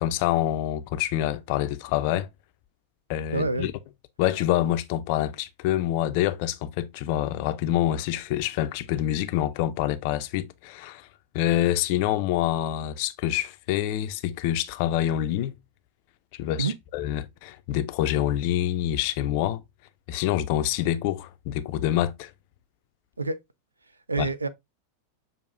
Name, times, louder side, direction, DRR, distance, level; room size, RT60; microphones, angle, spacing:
voice 1, 0.0-2.3 3.1-3.7 4.2-11.1 11.3-15.6 16.4-19.6 20.1-22.3 24.2-24.3, left 12 dB, 45° left, 0.4 m, -26 dB
voice 2, 3.3-3.7 16.6-16.7 23.2-23.4 24.1-24.5, right 3 dB, 80° right, 0.4 m, -27 dB
6.4 x 2.6 x 2.5 m
figure-of-eight pair, 90°, 0 cm